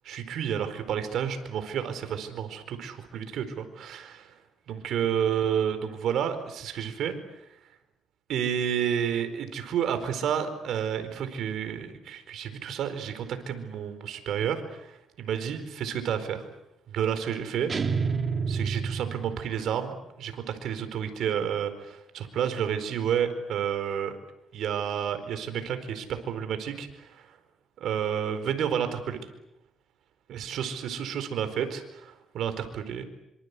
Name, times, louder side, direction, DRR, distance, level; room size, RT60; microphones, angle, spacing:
voice 1, 0.0-4.3 4.7-7.2 8.3-16.5 16.9-17.7 18.5-24.2 24.5-27.3 27.8-29.2 30.3-33.0, right 8 dB, 75° right, 9 dB, 4.4 m, -30 dB
sound 1, 17.7-19.7, right 5 dB, 40° right, 2.2 m, -29 dB
26.0 x 26.0 x 8.4 m, 0.86 s
cardioid pair, 90°, 0 cm